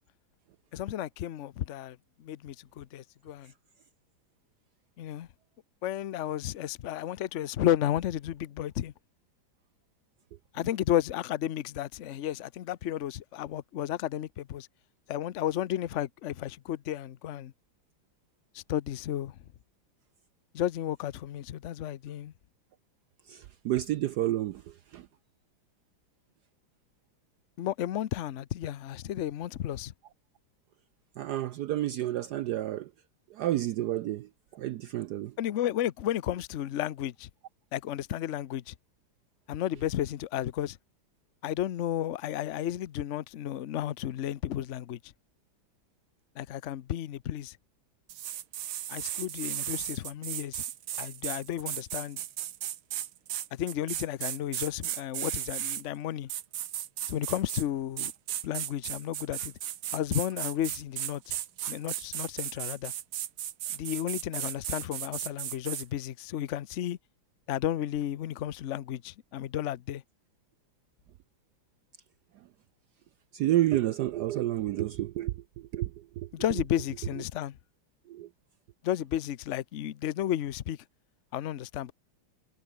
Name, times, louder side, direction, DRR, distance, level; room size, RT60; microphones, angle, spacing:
voice 1, 0.7-3.5 5.0-5.3 5.8-8.9 10.5-14.7 15.1-17.5 18.5-19.4 20.5-22.3 27.6-29.9 35.4-37.3 37.7-38.7 39.5-40.8 41.4-45.0 46.4-47.6 48.9-50.6 51.0-52.2 53.5-56.3 57.1-58.1 58.4-59.5 59.9-61.3 61.7-62.9 63.7-67.0 67.5-70.0 76.3-77.6 78.8-80.8 81.3-81.9, left 11 dB, 80° left, 0.6 m, -33 dB
voice 2, 23.3-24.6 24.9-25.0 31.2-32.9 33.4-34.3 34.5-35.3 73.3-75.3 75.7-75.9 76.2-76.3 78.1-78.3, right 14 dB, 75° right, 1.0 m, -29 dB
sound 1, 48.1-55.8 56.3-57.7 58.0-65.9, right 12 dB, 90° right, 1.9 m, -35 dB
omnidirectional pair, 2.2 m